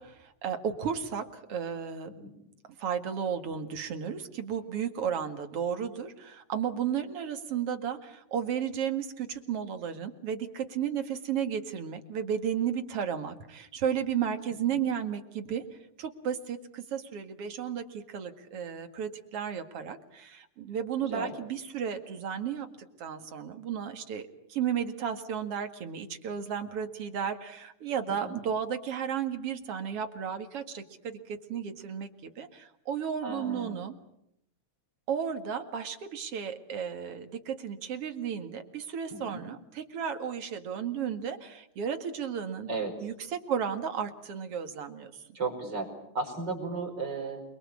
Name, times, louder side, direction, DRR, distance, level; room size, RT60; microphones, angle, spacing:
voice 1, 0.0-2.1 2.8-15.6 16.0-22.7 23.0-33.9 35.1-42.7 43.0-45.2, right 8 dB, 50° right, 7 dB, 2.8 m, -33 dB
voice 2, 21.0-21.3 28.1-28.4 33.2-33.8 39.1-39.4 42.7-42.9 45.3-47.4, right 3 dB, 35° right, 2 dB, 5.3 m, -35 dB
28.5 x 23.0 x 8.5 m, 0.77 s
omnidirectional pair, 3.5 m